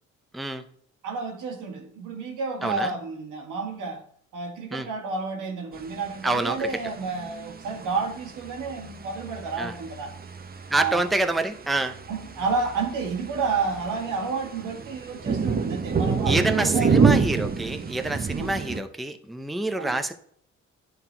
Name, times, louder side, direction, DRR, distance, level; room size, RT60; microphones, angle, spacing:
voice 1, 0.3-0.6 2.6-2.9 4.7-4.9 6.2-6.8 9.6-9.7 10.7-12.0 16.2-20.1, right 2 dB, ahead, 0.5 m, -27 dB
voice 2, 1.0-4.0 4.3-10.1 10.7-11.0 12.1-17.0 18.4-18.5 19.8-20.0, right 4 dB, 85° right, 1.7 m, -30 dB
sound 1, 5.7-18.8, right 5 dB, 30° right, 0.8 m, -28 dB
10.0 x 4.0 x 4.4 m
cardioid pair, 90°, 30 cm